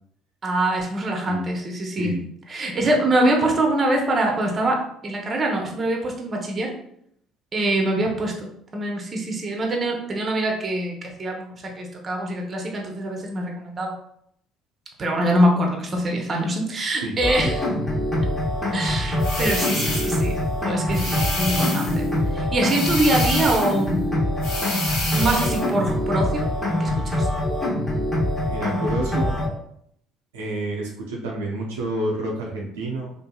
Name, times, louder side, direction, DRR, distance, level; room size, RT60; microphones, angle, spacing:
voice 1, 0.4-2.2 2.5-6.7 7.5-13.9 15.0-17.6 18.1-18.3 18.7-20.4 20.6-22.1 22.3-24.0 25.1-26.5 26.8-27.3, right 1 dB, 40° right, 1 dB, 0.7 m, -24 dB
sound 1, 17.2-29.5, left 1 dB, 20° left, 1.0 m, -24 dB
sound 2, 19.2-20.3 20.9-22.0 22.6-23.8 24.4-25.7, left 2 dB, 75° left, 1.0 m, -29 dB
sound 3, 21.5-21.8 23.3-23.6 25.0-25.3 26.7-27.0, right 1 dB, 5° right, 0.3 m, -28 dB
voice 2, 28.5-29.4 30.3-33.1, right 2 dB, 90° right, -2 dB, 0.5 m, -29 dB
2.7 x 2.5 x 2.3 m, 0.70 s
hypercardioid pair, 60°, 0 cm